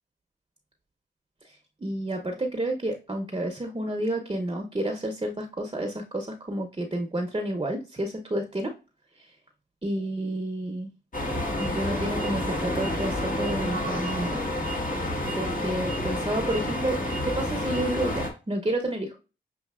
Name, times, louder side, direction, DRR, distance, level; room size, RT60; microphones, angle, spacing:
voice 1, 1.4-8.7 9.2-9.4 9.8-10.9 11.6-14.4 15.4-19.2, right 1 dB, 25° right, 4 dB, 0.8 m, -30 dB
sound 1, 11.1-18.3, left 1 dB, 40° left, 1.6 m, -29 dB
6.4 x 2.8 x 2.4 m, 0.31 s
cardioid pair, 50°, 20 cm